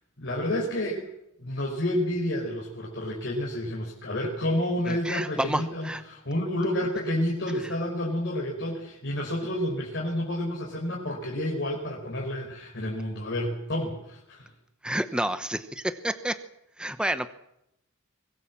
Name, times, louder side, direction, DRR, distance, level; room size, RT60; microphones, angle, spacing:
voice 1, 0.2-1.1 1.4-14.5, left 1 dB, 55° left, -1 dB, 5.0 m, -30 dB
voice 2, 4.9-6.0 14.8-16.3 16.8-17.3, right 1 dB, 5° right, 10 dB, 0.9 m, -29 dB
23.5 x 20.5 x 7.5 m, 0.81 s
head